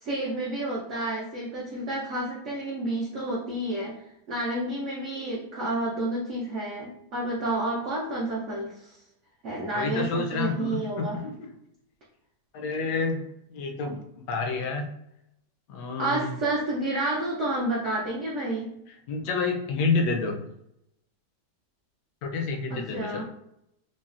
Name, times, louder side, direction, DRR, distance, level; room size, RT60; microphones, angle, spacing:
voice 1, 0.0-3.9 4.3-9.0 9.4-11.2 16.0-18.7 22.7-23.2, right 1 dB, 65° right, -5 dB, 0.7 m, -30 dB
voice 2, 9.7-11.5 12.5-13.2 13.5-14.0 14.3-14.9 15.7-16.3 19.1-20.4 22.2-23.2, left 4 dB, 75° left, 3 dB, 1.1 m, -28 dB
3.9 x 2.0 x 2.4 m, 0.78 s
omnidirectional pair, 1.9 m